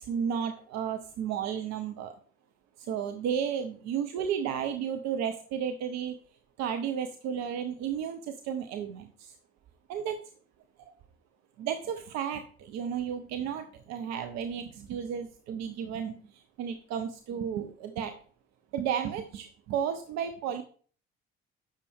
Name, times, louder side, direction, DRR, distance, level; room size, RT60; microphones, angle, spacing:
voice 1, 0.0-2.1 2.8-6.2 6.6-9.3 9.9-10.2 11.6-16.2 16.6-18.2 18.7-20.6, right 8 dB, 60° right, 8 dB, 0.8 m, -33 dB
8.9 x 6.7 x 3.5 m, 0.43 s
figure-of-eight pair, 45°, 30 cm